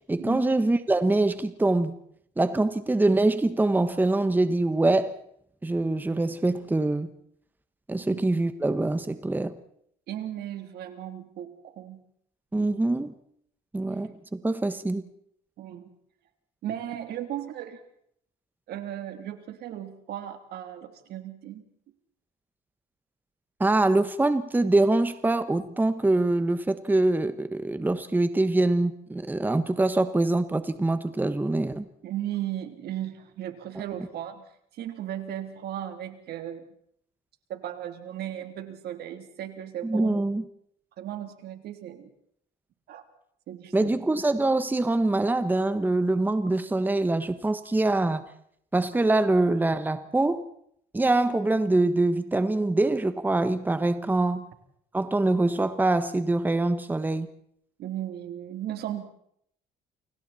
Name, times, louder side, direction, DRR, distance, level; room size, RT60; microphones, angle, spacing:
voice 1, 0.1-1.9 2.4-5.1 5.6-7.1 7.9-9.6 12.5-13.1 13.7-15.0 23.6-31.8 39.8-40.4 43.7-48.2 48.7-50.4 50.9-54.5 54.9-57.3, right 2 dB, 10° right, 11 dB, 1.3 m, -24 dB
voice 2, 10.1-12.0 12.5-12.8 15.6-15.9 16.6-17.8 18.7-21.6 32.0-36.6 37.5-40.2 41.0-42.1 42.9-43.0 43.5-43.9 57.8-59.0, right 11 dB, 70° right, 6 dB, 3.3 m, -36 dB
29.5 x 25.0 x 4.3 m, 0.69 s
cardioid pair, 110°, 17 cm